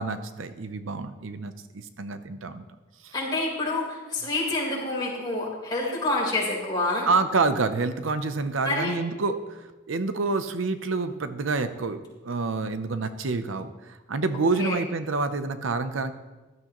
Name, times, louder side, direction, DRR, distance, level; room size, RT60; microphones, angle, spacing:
voice 1, 0.0-2.6 3.0-3.1 7.0-9.6 9.9-16.1, right 3 dB, 80° right, 10 dB, 0.7 m, -28 dB
voice 2, 3.1-7.1 8.6-8.9 14.6-14.8, left 2 dB, 20° left, -5 dB, 4.0 m, -27 dB
15.5 x 12.5 x 3.1 m, 1.2 s
head